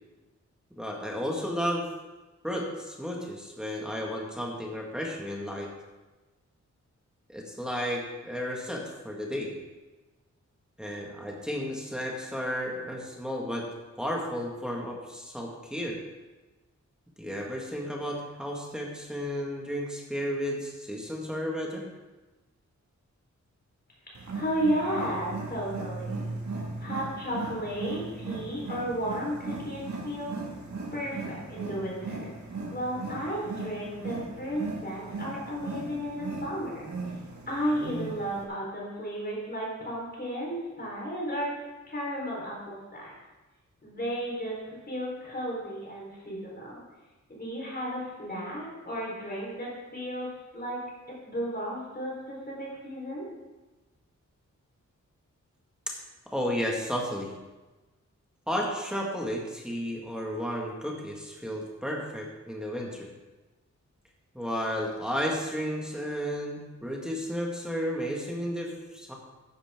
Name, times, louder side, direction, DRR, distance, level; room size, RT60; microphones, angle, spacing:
voice 1, 0.8-1.9 2.4-5.7 7.3-9.5 10.8-13.7 14.0-16.0 17.2-21.9 56.3-57.3 58.5-63.1 64.3-69.1, equal, 5° right, -2 dB, 1.9 m, -33 dB
voice 2, 24.1-26.3 26.8-30.3 30.9-32.3 32.7-36.9 37.5-43.1 43.8-46.8 47.3-50.3 50.5-50.8 51.2-53.3, equal, 35° left, -4 dB, 4.3 m, -33 dB
Wild animals, 24.1-38.4, right 3 dB, 70° right, 2.2 m, -38 dB
14.0 x 10.5 x 3.8 m, 1.2 s
wide cardioid pair, 120°, 30 cm